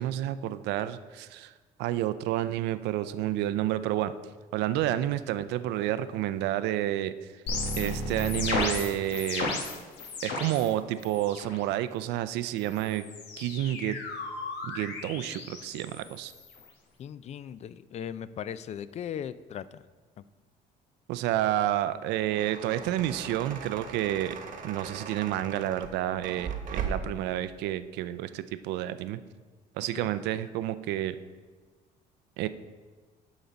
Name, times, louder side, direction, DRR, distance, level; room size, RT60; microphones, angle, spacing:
voice 1, 0.0-1.5 1.8-4.1 4.5-7.1 7.8-9.6 10.2-13.0 13.4-14.0 14.6-16.3 21.1-24.4 24.6-29.2 29.8-31.2 32.4-32.5, right 13 dB, 90° right, 13 dB, 0.4 m, -30 dB
sound 1, 7.5-10.7 11.0-11.6 12.6-16.7, left 3 dB, 85° left, 1.4 m, -34 dB
voice 2, 17.0-19.8 29.9-30.1, left 9 dB, 40° left, 16 dB, 0.3 m, -38 dB
sound 2, 22.0-27.2, right 6 dB, 50° right, 1.1 m, -38 dB
11.0 x 4.0 x 5.1 m, 1.4 s
cardioid pair, 110°, 17 cm